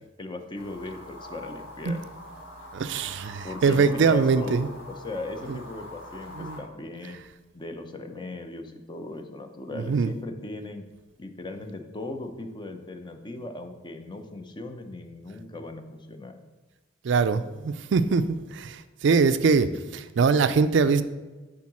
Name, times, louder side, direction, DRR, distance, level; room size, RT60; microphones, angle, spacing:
voice 1, 0.2-2.0 3.4-4.6 4.9-7.2 7.5-10.8 11.2-16.4, left 2 dB, 25° left, 6 dB, 0.6 m, -38 dB
sound 1, 0.5-6.6, left 1 dB, 75° left, 1.7 m, -43 dB
voice 2, 2.7-4.7 5.5-5.6 6.4-6.6 9.7-10.1 17.0-21.0, right 5 dB, 65° right, 12 dB, 0.4 m, -23 dB
8.4 x 3.8 x 6.1 m, 1.2 s
head